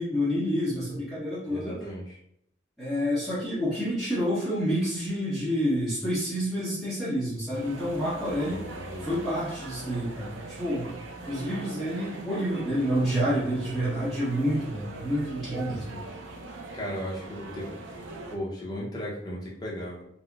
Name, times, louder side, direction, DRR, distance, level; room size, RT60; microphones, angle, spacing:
voice 1, 0.0-1.8 2.8-8.7 9.0-10.9 11.3-16.0, equal, ahead, -13 dB, 0.9 m, -28 dB
voice 2, 1.5-2.2 8.4-9.2 16.7-17.7 18.3-20.0, equal, 20° left, -4 dB, 0.6 m, -36 dB
sound 1, 7.5-18.4, right 2 dB, 80° right, 0.5 m, -41 dB
4.1 x 2.0 x 2.3 m, 0.72 s
head